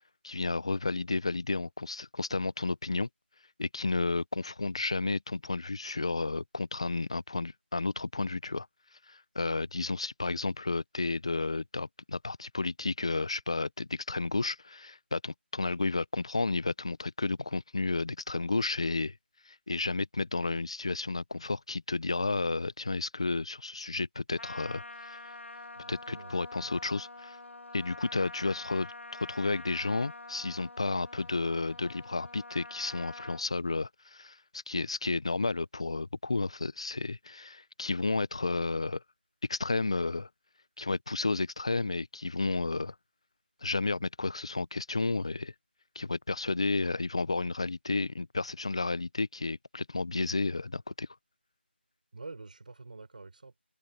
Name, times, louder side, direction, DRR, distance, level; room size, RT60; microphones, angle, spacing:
voice 1, 0.2-3.1 3.6-8.7 9.1-19.1 19.5-25.3 25.9-27.4 27.7-39.0 39.5-40.3 40.8-42.9 43.6-45.5 46.0-51.1, left 3 dB, 30° left, 0.5 m, -32 dB
Trumpet, 24.4-33.4, left 2 dB, 85° left, 1.3 m, -46 dB
voice 2, 25.8-26.3 26.6-26.7 52.1-53.6, right 3 dB, 45° right, 5.9 m, -46 dB
figure-of-eight pair, 175°, 6 cm